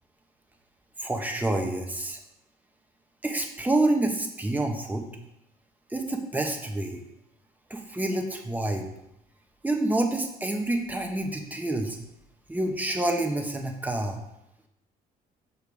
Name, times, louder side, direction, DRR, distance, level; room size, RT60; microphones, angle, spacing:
voice 1, 1.0-2.2 3.2-5.1 5.9-7.0 7.7-8.9 9.6-12.0 12.5-14.2, right 2 dB, 10° right, 3 dB, 1.0 m, -28 dB
6.8 x 6.5 x 3.5 m, 0.81 s
cardioid pair, 110°, 17 cm